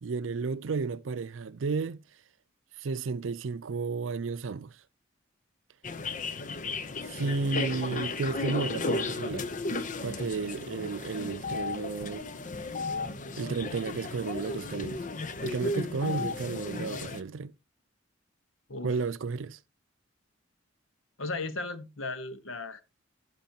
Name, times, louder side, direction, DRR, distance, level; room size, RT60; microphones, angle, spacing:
voice 1, 0.0-2.0 2.8-4.8 7.1-9.5 9.8-12.3 13.4-15.0 15.4-17.5 18.8-19.6, right 4 dB, 75° right, 0.5 m, -33 dB
sound 1, 5.8-17.2, left 3 dB, 40° left, 0.7 m, -34 dB
voice 2, 21.2-22.8, left 3 dB, 85° left, 1.2 m, -36 dB
16.0 x 6.0 x 2.8 m
head